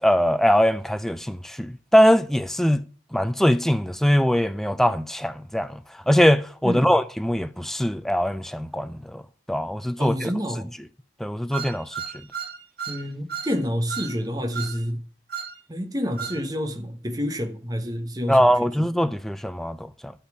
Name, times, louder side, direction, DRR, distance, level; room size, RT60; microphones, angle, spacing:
voice 1, 0.0-2.8 3.1-9.2 9.5-10.3 11.2-12.0 18.3-20.1, equal, ahead, 0.4 m, -22 dB
voice 2, 10.0-10.7 12.9-15.0 15.7-18.4, equal, 20° right, 1.2 m, -28 dB
sound 1, 11.5-13.0 13.3-13.5 13.9-14.1 14.5-14.8 15.3-15.5 16.2-16.4, right 7 dB, 55° right, 1.2 m, -33 dB
12.0 x 4.3 x 8.2 m
head